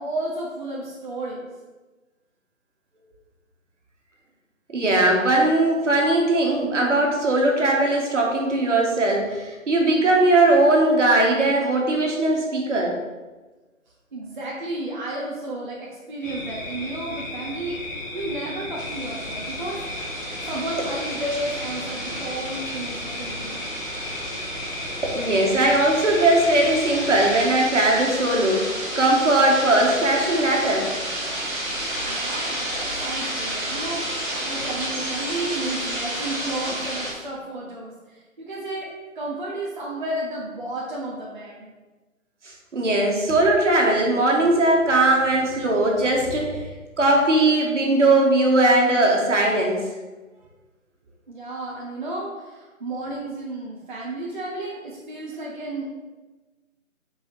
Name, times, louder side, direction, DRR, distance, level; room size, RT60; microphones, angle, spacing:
voice 1, 0.0-1.5 14.1-19.8 20.4-23.7 32.1-38.9 39.1-41.7 51.3-55.9, right 1 dB, 35° right, -5 dB, 0.8 m, -32 dB
voice 2, 4.7-12.9 25.0-28.7 29.0-30.9 42.7-46.7 47.0-49.8, right 2 dB, 60° right, -1 dB, 1.7 m, -19 dB
sound 1, 16.2-27.4, left 2 dB, 60° left, 2.1 m, -35 dB
sound 2, 18.7-37.1, right 1 dB, 15° right, 2.0 m, -31 dB
5.4 x 4.8 x 4.5 m, 1.2 s
figure-of-eight pair, 165°, 41 cm